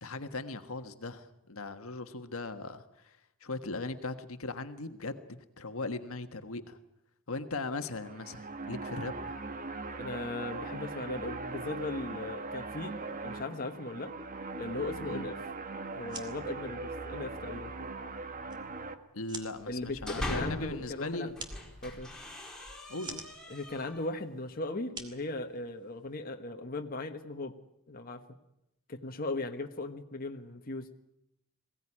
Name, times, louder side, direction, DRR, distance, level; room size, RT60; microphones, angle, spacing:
voice 1, 0.0-6.8 7.3-9.4 15.0-15.2 19.1-21.3 22.9-23.2, left 3 dB, 70° left, 8 dB, 1.5 m, -39 dB
sound 1, 7.8-18.9, right 3 dB, 40° right, 1.4 m, -40 dB
voice 2, 10.0-14.2 14.6-15.4 15.9-17.7 19.7-21.3 21.8-22.1 23.5-27.5 27.9-28.2 28.9-30.9, left 2 dB, 40° left, 4 dB, 1.4 m, -38 dB
sound 2, 15.9-26.1, right 3 dB, 20° right, 2.4 m, -50 dB
sound 3, 19.7-20.8 21.3-24.1, left 1 dB, 5° left, 4.4 m, -40 dB
21.5 x 17.0 x 10.0 m, 0.84 s
head